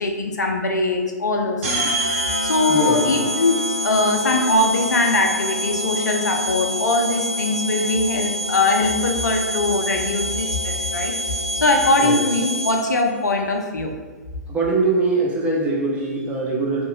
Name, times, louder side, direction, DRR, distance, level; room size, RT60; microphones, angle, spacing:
voice 1, 0.0-1.9 2.4-11.2 11.6-13.9, left 2 dB, 75° left, 2 dB, 0.4 m, -21 dB
sound 1, 1.6-13.0, equal, 50° right, 0.7 m, -26 dB
voice 2, 2.7-3.2 12.0-12.2 14.5-16.9, right 3 dB, 15° right, -4 dB, 0.5 m, -22 dB
2.8 x 2.2 x 2.4 m, 1.4 s
figure-of-eight pair, 115°, 10 cm